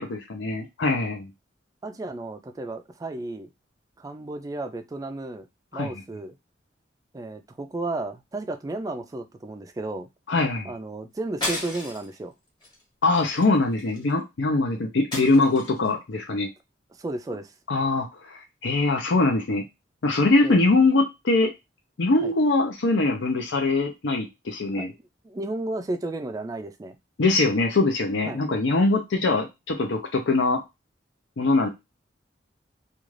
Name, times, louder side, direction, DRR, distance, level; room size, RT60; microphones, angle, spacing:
voice 1, 0.1-1.3 5.7-5.9 10.3-10.7 13.0-16.5 17.7-19.6 20.0-21.5 22.0-24.9 27.2-30.6 31.4-31.7, left 3 dB, 85° left, 3 dB, 0.6 m, -22 dB
voice 2, 1.8-3.5 4.0-5.5 5.7-6.4 7.1-10.1 10.6-12.3 17.0-17.5 20.4-20.6 22.2-22.3 24.7-27.0 28.3-28.4, right 2 dB, 20° right, 8 dB, 0.3 m, -33 dB
sound 1, 11.4-12.2 12.6-12.8 13.1-14.1 15.1-15.9, left 2 dB, 25° left, 1.0 m, -33 dB
2.5 x 2.3 x 3.1 m, 0.22 s
head